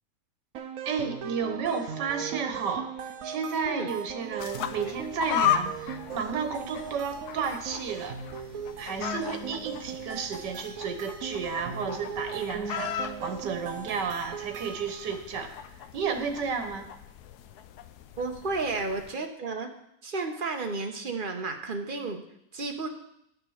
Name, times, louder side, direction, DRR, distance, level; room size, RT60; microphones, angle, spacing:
sound 1, 0.5-15.2, right 7 dB, 60° right, 1.1 m, -39 dB
voice 1, 0.9-8.2 8.8-15.5 15.9-16.9, right 5 dB, 80° right, 8 dB, 1.8 m, -32 dB
sound 2, 4.4-19.1, left 9 dB, 75° left, 1.1 m, -36 dB
voice 2, 18.2-19.7 20.0-22.2 22.5-22.9, right 3 dB, 35° right, 4 dB, 1.2 m, -32 dB
10.5 x 6.7 x 6.4 m, 0.76 s
omnidirectional pair, 1.8 m